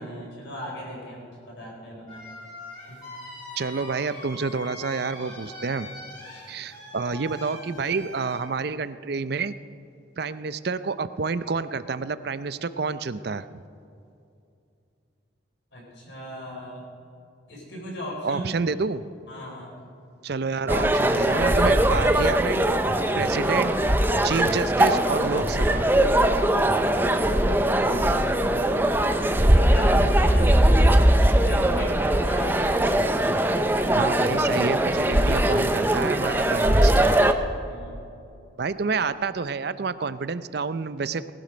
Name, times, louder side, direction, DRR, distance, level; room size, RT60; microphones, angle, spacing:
voice 1, 0.0-2.2 2.9-3.0 15.7-16.8 17.5-18.7 19.3-19.7 27.7-28.7 29.3-30.9 31.4-32.6 37.6-38.0, equal, 65° left, -3 dB, 4.5 m, -38 dB
sound 1, 2.1-8.4, left 1 dB, 25° left, 4.7 m, -42 dB
voice 2, 3.6-5.9 6.5-9.5 10.2-13.6 18.2-19.0 20.2-22.6 23.2-23.8 24.2-25.9 30.0-30.1 33.9-37.1 38.6-41.3, right 4 dB, 55° right, 14 dB, 0.5 m, -29 dB
sound 2, 20.7-37.3, right 1 dB, 10° right, 0.6 m, -20 dB
19.0 x 12.0 x 5.1 m, 2.6 s
head